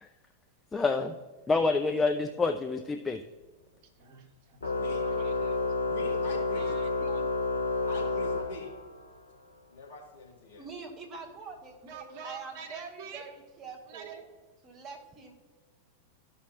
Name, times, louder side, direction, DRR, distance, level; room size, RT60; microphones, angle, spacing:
voice 1, 0.7-1.2 1.5-3.2, left 3 dB, 15° left, 6 dB, 0.4 m, -27 dB
voice 2, 3.8-4.7 5.0-5.6 6.5-7.3 7.8-7.9 11.8-13.2 13.9-14.2, right 6 dB, 50° right, 5 dB, 1.1 m, -46 dB
Organ, 4.6-9.1, left 3 dB, 75° left, 0.7 m, -30 dB
voice 3, 4.7-5.0 5.9-6.7 7.9-8.7 9.7-10.7, left 3 dB, 55° left, -1 dB, 1.9 m, -43 dB
voice 4, 10.6-14.3 14.6-15.3, right 4 dB, 25° right, 0 dB, 2.0 m, -44 dB
13.5 x 5.6 x 2.8 m, 1.3 s
figure-of-eight pair, 90°, 0 cm